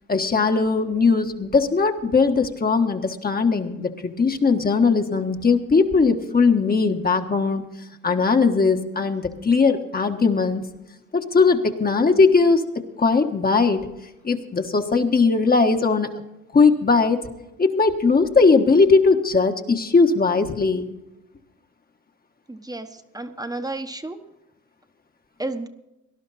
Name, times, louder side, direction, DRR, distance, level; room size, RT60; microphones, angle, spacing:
voice 1, 0.1-7.6 8.0-10.6 11.1-13.8 14.2-16.1 16.5-17.2 17.6-20.9, left 4 dB, 30° left, 5 dB, 1.4 m, -19 dB
voice 2, 22.5-22.9 23.1-24.2 25.4-25.7, right 2 dB, 10° right, 7 dB, 1.2 m, -31 dB
19.0 x 11.5 x 4.2 m, 0.93 s
cardioid pair, 90°, 30 cm